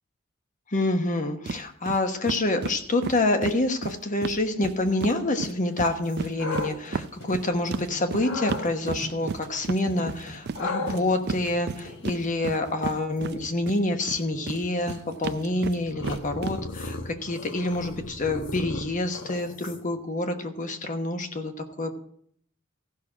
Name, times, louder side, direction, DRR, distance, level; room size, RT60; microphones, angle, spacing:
voice 1, 0.7-21.9, left 2 dB, 40° left, 6 dB, 1.1 m, -27 dB
sound 1, 1.5-1.6 1.9-2.0 2.3-5.2 5.4-13.8 14.1-16.6, right 4 dB, 50° right, 0.4 m, -33 dB
sound 2, 5.4-12.2, equal, 85° left, 3.4 m, -45 dB
sound 3, 6.0-7.8 8.2-8.7 10.5-20.0, left 3 dB, 60° left, 1.1 m, -37 dB
15.0 x 6.1 x 5.0 m, 0.65 s
head